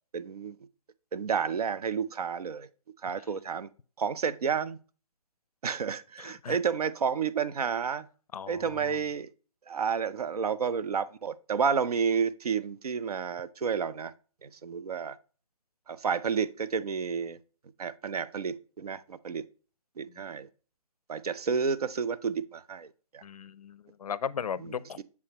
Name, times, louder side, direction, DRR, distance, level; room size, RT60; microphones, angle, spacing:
voice 1, 0.1-0.6 1.1-2.7 3.0-3.7 4.0-4.8 5.6-8.1 8.5-9.3 9.7-14.1 14.4-15.2 15.9-17.4 17.8-19.4 20.0-20.5 21.1-23.2 24.6-25.0, right 6 dB, 75° right, 0.6 m, -31 dB
voice 2, 6.2-6.6 8.3-8.6 23.2-25.0, left 7 dB, 70° left, 0.4 m, -36 dB
7.0 x 4.8 x 2.9 m
hypercardioid pair, 165°, 19 cm